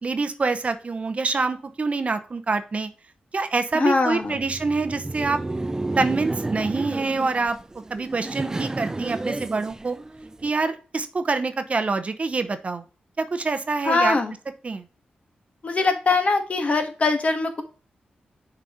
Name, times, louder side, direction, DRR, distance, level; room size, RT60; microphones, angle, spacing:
voice 1, 0.0-2.9 3.3-5.4 6.0-7.6 7.9-10.0 10.4-12.8 13.2-14.2 14.6-14.8, right 3 dB, 40° right, 9 dB, 0.8 m, -26 dB
voice 2, 3.7-4.4 13.8-14.3 15.6-17.6, left 3 dB, 45° left, 6 dB, 1.4 m, -22 dB
Laughter, 4.2-10.5, right 2 dB, 20° right, 0.4 m, -31 dB
6.5 x 4.1 x 4.3 m, 0.35 s
cardioid pair, 75°, 3 cm